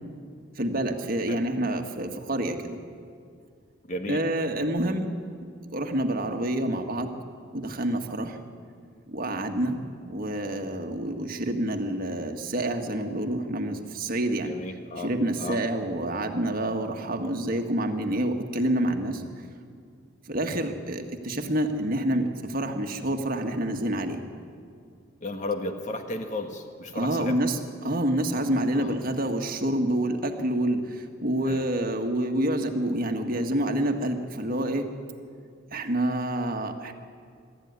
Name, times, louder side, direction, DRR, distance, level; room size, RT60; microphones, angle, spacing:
voice 1, 0.6-2.8 4.1-5.1 5.7-7.1 7.5-8.4 9.1-14.5 15.0-19.2 20.3-24.2 26.9-34.9 35.7-36.9, right 1 dB, 45° right, 5 dB, 1.6 m, -28 dB
voice 2, 3.9-4.2 14.4-15.1 15.4-15.6 25.2-27.4 28.7-29.0 31.4-31.6, left 2 dB, 35° left, 5 dB, 1.8 m, -34 dB
24.0 x 13.5 x 9.7 m, 2.2 s
head